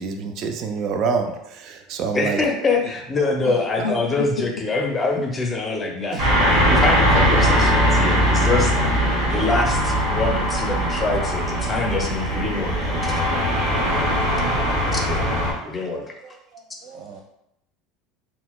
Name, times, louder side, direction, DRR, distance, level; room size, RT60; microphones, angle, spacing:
voice 1, 0.0-2.4 3.2-3.9 6.1-6.2 15.9-16.1 16.5-17.2, right 5 dB, 55° right, 5 dB, 0.4 m, -28 dB
voice 2, 2.1-6.4 6.7-8.7 9.3-13.5 14.9-15.3 15.6-16.1, left 3 dB, 25° left, 1 dB, 0.5 m, -25 dB
voice 3, 3.8-4.1 7.4-8.4, left 5 dB, 85° left, 0 dB, 0.3 m, -32 dB
sound 1, 6.2-15.5, equal, 75° right, 1.2 m, -20 dB
4.0 x 2.1 x 2.3 m, 0.79 s
hypercardioid pair, 80°, 0 cm